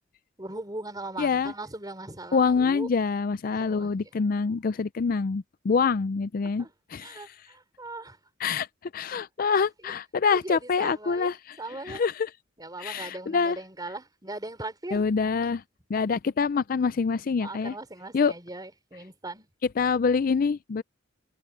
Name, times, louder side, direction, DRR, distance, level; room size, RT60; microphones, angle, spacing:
voice 1, 0.4-2.9 3.5-4.1 6.4-6.7 7.0-8.2 9.5-9.9 10.3-12.0 12.6-15.0 17.4-19.5, right 2 dB, 20° right, 4.2 m, -39 dB
voice 2, 1.2-1.5 2.3-6.7 6.9-7.2 8.4-8.7 8.9-11.3 11.9-12.1 12.8-13.6 14.9-15.6 15.9-17.7 18.1-18.3 19.8-20.8, left 5 dB, 45° left, 0.4 m, -25 dB
head